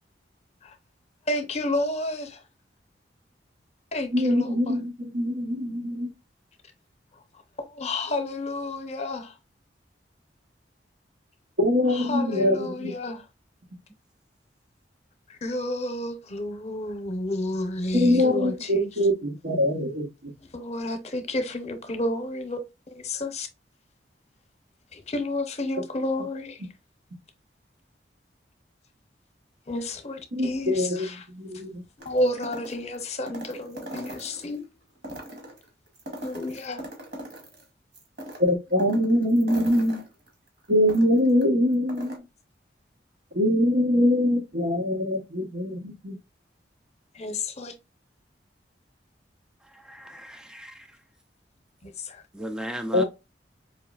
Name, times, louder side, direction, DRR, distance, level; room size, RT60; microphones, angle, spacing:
voice 1, 1.3-2.4 3.9-4.8 7.6-9.3 11.9-13.2 15.3-18.9 20.5-22.6 22.9-23.5 24.9-26.6 29.7-31.3 32.0-34.6 36.2-36.8 47.1-47.7 51.8-52.2, left 1 dB, 40° left, 0.8 m, -31 dB
voice 2, 4.1-6.1 11.6-12.9 17.9-20.1 30.3-31.8 38.4-40.0 40.7-42.1 43.3-46.2 52.9-53.0, left 1 dB, 80° right, 1.1 m, -23 dB
sound 1, 32.0-34.6 35.0-37.6 37.9-41.4 41.7-42.2, right 1 dB, 65° right, 1.8 m, -40 dB
voice 3, 49.7-50.9 52.3-53.0, equal, 5° right, 0.3 m, -36 dB
4.8 x 3.0 x 2.4 m
head